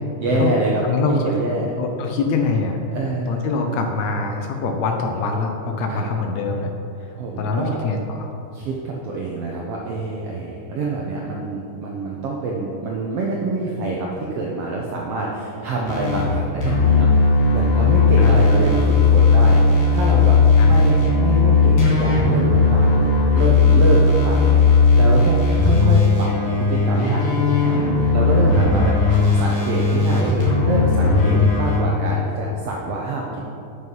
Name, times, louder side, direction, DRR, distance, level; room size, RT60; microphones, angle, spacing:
voice 1, 0.2-0.8 1.1-1.7 2.9-3.6 5.9-6.1 7.2-7.8 8.5-17.1 17.5-20.4 20.7-27.7 28.1-29.0 29.3-33.4, right 3 dB, 80° right, -2 dB, 1.3 m, -26 dB
voice 2, 0.8-1.1 1.8-2.8 3.3-6.7 7.0-7.1 7.4-8.3 18.2-18.5 20.6-20.9, left 4 dB, 75° left, 3 dB, 1.6 m, -24 dB
sound 1, 15.9-16.3 16.6-31.8, left 4 dB, 50° left, 2.2 m, -16 dB
9.3 x 6.5 x 5.4 m, 2.9 s
omnidirectional pair, 3.9 m